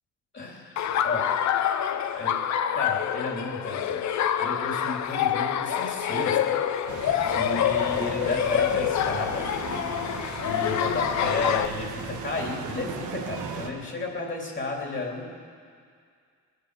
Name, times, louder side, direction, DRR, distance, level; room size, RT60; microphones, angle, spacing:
voice 1, 0.3-1.8 2.1-2.4 2.7-4.1 4.4-6.6 7.2-9.5 10.4-15.3, left 3 dB, 40° left, 0 dB, 3.1 m, -33 dB
Laughter, 0.8-11.7, left 9 dB, 65° left, 0.7 m, -26 dB
sound 1, 6.9-13.7, right 5 dB, 90° right, 1.4 m, -37 dB
21.0 x 8.4 x 6.7 m, 2.2 s
cardioid pair, 90°, 30 cm